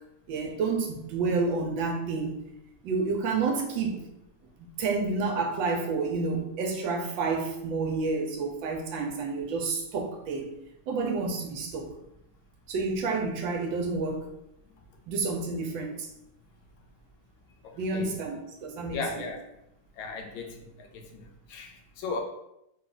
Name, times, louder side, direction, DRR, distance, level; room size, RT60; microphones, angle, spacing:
voice 1, 0.3-2.4 2.8-4.1 4.8-10.6 10.9-11.9 12.7-14.3 15.1-16.1 17.7-19.3, right 4 dB, 80° right, 2 dB, 1.3 m, -29 dB
voice 2, 17.6-18.2 18.9-19.5 20.0-22.2, left 4 dB, 80° left, 3 dB, 1.4 m, -37 dB
3.8 x 2.3 x 3.7 m, 0.82 s
omnidirectional pair, 2.2 m